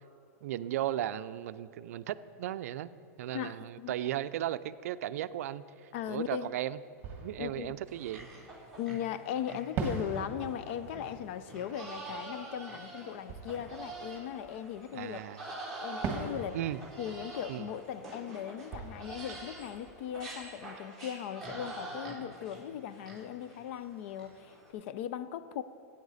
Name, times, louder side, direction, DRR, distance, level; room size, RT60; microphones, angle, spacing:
voice 1, 0.4-2.9 3.2-6.8 7.2-8.3 14.9-15.5 16.5-16.8 17.5-17.7, right 12 dB, 75° right, 0.4 m, -36 dB
voice 2, 3.3-3.9 5.9-6.5 7.4-7.8 8.8-15.2 15.8-16.6 17.0-25.6, left 10 dB, 50° left, 0.5 m, -38 dB
Fireworks, 6.4-6.5 7.0-9.0 9.8-15.1 16.0-20.8, right 5 dB, 25° right, 1.5 m, -43 dB
sound 1, 7.9-24.7, right 2 dB, 5° left, 2.5 m, -46 dB
15.5 x 8.6 x 4.1 m
supercardioid pair, 150°, 8 cm